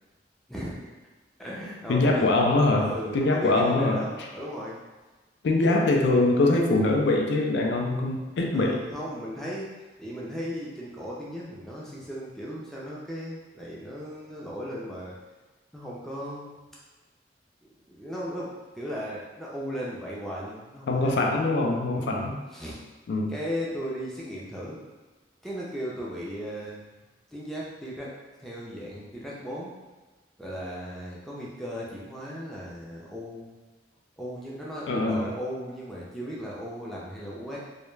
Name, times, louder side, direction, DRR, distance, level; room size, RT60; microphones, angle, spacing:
voice 1, 0.5-0.9 1.4-2.3 2.8-4.8 5.6-5.8 8.5-9.7 10.0-15.2 15.7-16.5 17.6-21.1 21.9-22.8 23.3-24.8 25.4-26.9 27.3-29.8 30.4-33.5 34.2-37.6, equal, ahead, -6 dB, 0.4 m, -36 dB
voice 2, 1.9-4.0 5.4-8.8 20.9-22.4 23.1-23.3 34.9-35.2, left 2 dB, 70° left, 1 dB, 0.4 m, -23 dB
2.2 x 2.1 x 3.1 m, 1.2 s
head